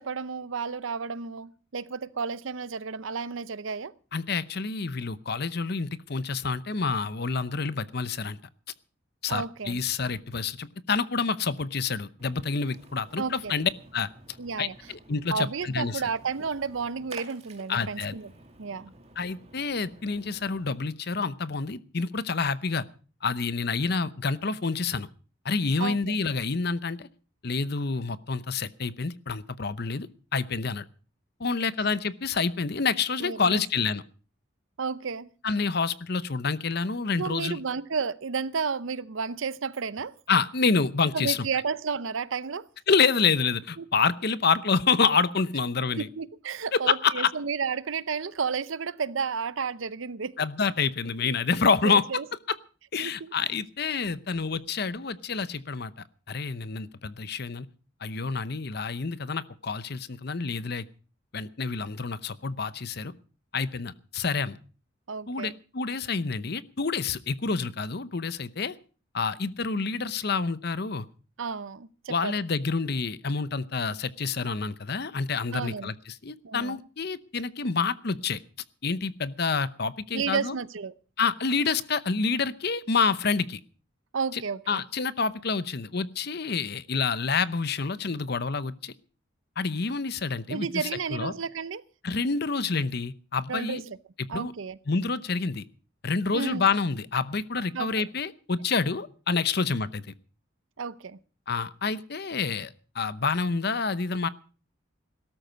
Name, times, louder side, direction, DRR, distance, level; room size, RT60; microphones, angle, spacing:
voice 1, 0.0-3.9 9.3-9.8 13.2-13.5 14.4-14.7 15.3-18.3 18.6-18.9 25.8-26.2 33.2-33.6 34.8-35.3 37.2-40.1 41.1-42.7 43.8-43.9 46.0-50.4 51.8-52.2 53.0-53.3 65.1-65.6 71.4-72.3 75.5-75.9 76.4-76.8 80.1-80.9 84.1-84.8 90.5-91.8 93.5-94.0 94.3-94.8 96.3-96.7 97.7-98.0 100.8-101.2, right 5 dB, 70° right, 0.7 m, -32 dB
voice 2, 4.1-8.4 9.2-14.1 14.6-16.0 17.7-18.1 19.2-22.8 23.2-25.1 25.4-27.1 27.4-30.1 30.3-30.8 31.4-34.0 35.4-37.6 40.3-41.4 42.9-46.1 46.7-47.3 50.4-52.0 52.9-55.9 56.3-57.7 58.0-60.9 61.3-63.1 63.5-64.6 65.3-68.8 69.1-71.0 72.1-78.4 78.8-80.6 81.2-83.6 84.3-84.4 84.7-88.9 89.6-91.3 92.0-93.8 94.2-94.5 94.9-95.6 96.0-100.1 101.5-104.3, left 5 dB, 50° left, 0.8 m, -28 dB
Splash splatter, 12.2-20.9, right 2 dB, 30° right, 2.4 m, -51 dB
17.0 x 13.5 x 5.1 m
head